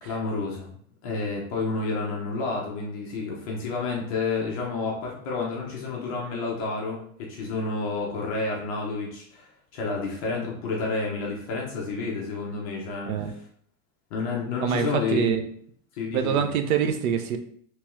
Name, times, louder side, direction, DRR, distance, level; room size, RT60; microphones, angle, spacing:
voice 1, 0.0-9.5 9.7-13.1 14.1-15.4 15.9-16.4, left 3 dB, 25° left, -2 dB, 0.4 m, -30 dB
voice 2, 14.6-15.4 16.1-17.4, right 8 dB, 70° right, 7 dB, 0.6 m, -25 dB
3.5 x 3.0 x 3.0 m, 0.63 s
supercardioid pair, 170°, 44 cm